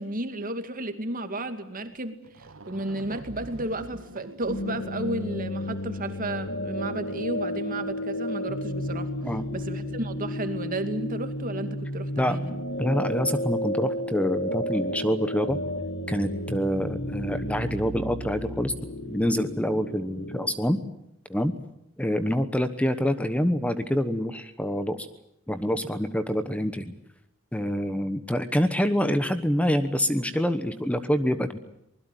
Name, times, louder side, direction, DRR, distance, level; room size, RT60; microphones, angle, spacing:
voice 1, 0.0-9.1 9.5-12.6, right 1 dB, 45° right, 8 dB, 2.4 m, -33 dB
sound 1, 1.9-2.0 2.2-6.0, right 2 dB, 85° right, 1.6 m, -45 dB
sound 2, 4.5-20.5, equal, 55° left, 2.0 m, -32 dB
voice 2, 12.2-15.6 16.1-18.7 19.0-20.8 21.3-21.5 22.0-25.1 25.5-26.9 27.5-31.6, equal, 5° left, 10 dB, 1.1 m, -26 dB
24.5 x 21.0 x 9.2 m, 0.79 s
head